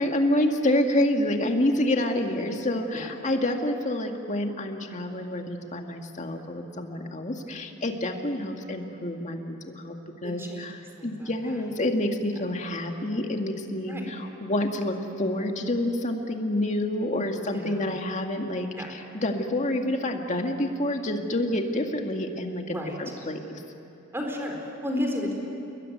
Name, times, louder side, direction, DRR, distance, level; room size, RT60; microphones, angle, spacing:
voice 1, 0.0-9.9 10.2-10.8 11.0-23.4, left 1 dB, 35° left, 4 dB, 2.1 m, -28 dB
voice 2, 10.2-10.7 11.0-11.6 13.9-14.1 17.4-18.0 18.8-18.9 22.7-23.0 24.1-25.3, left 1 dB, 10° right, 1 dB, 4.3 m, -33 dB
29.0 x 22.0 x 9.4 m, 2.8 s
head